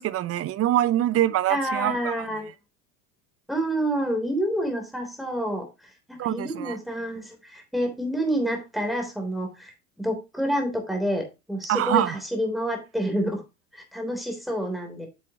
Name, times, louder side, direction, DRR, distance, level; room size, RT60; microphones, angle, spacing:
voice 1, 0.0-2.1 6.2-6.8 11.7-12.2, right 13 dB, 35° right, 0.7 m, -24 dB
voice 2, 1.5-2.5 3.5-13.4 13.7-15.1, equal, ahead, 3.3 m, -28 dB
8.9 x 7.3 x 2.9 m
hypercardioid pair, 75°, 43 cm